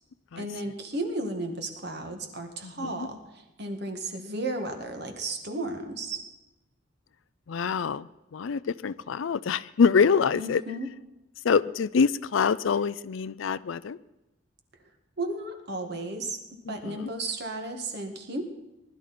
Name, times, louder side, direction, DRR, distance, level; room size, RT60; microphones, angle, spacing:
voice 1, 0.4-6.3 10.3-10.9 15.2-18.4, right 2 dB, 55° right, 5 dB, 1.9 m, -34 dB
voice 2, 2.6-3.1 7.5-10.6 11.4-14.0 16.7-17.1, left 6 dB, 75° left, 16 dB, 0.4 m, -25 dB
20.5 x 12.0 x 4.3 m, 0.99 s
head